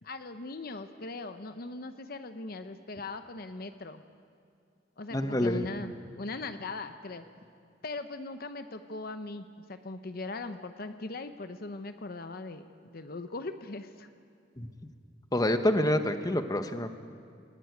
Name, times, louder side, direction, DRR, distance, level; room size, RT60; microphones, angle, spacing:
voice 1, 0.0-4.0 5.0-7.2 7.8-14.1, left 3 dB, 55° left, 9 dB, 0.8 m, -40 dB
voice 2, 5.1-5.7 14.6-14.7 15.3-16.9, left 1 dB, 20° left, 8 dB, 1.0 m, -27 dB
19.5 x 15.0 x 9.5 m, 2.4 s
head